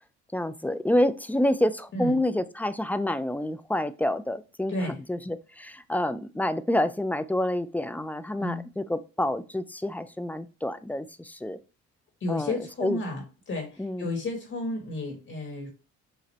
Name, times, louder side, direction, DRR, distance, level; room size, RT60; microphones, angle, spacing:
voice 1, 0.3-4.7 5.1-11.6 12.3-12.5 12.8-13.0 13.8-14.1, left 1 dB, 5° left, 0.3 m, -28 dB
voice 2, 12.2-15.7, left 2 dB, 45° left, 1.6 m, -32 dB
5.0 x 2.5 x 4.2 m
cardioid pair, 90°, 30 cm